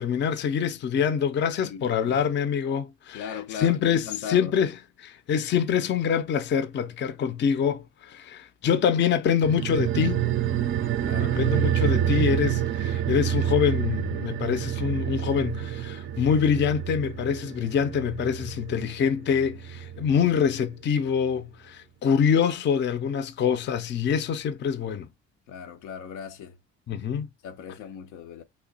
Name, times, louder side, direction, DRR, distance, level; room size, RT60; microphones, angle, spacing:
voice 1, 0.0-4.7 5.0-10.3 11.2-25.1 26.9-27.3, left 7 dB, 40° left, 0.4 m, -25 dB
voice 2, 1.6-2.3 3.1-4.5 11.0-11.5 25.5-26.6 27.4-28.4, left 7 dB, 85° left, 0.6 m, -38 dB
sound 1, 9.4-20.3 20.6-20.7, right 11 dB, 45° right, 0.4 m, -28 dB
3.0 x 2.2 x 3.9 m
cardioid pair, 90°, 30 cm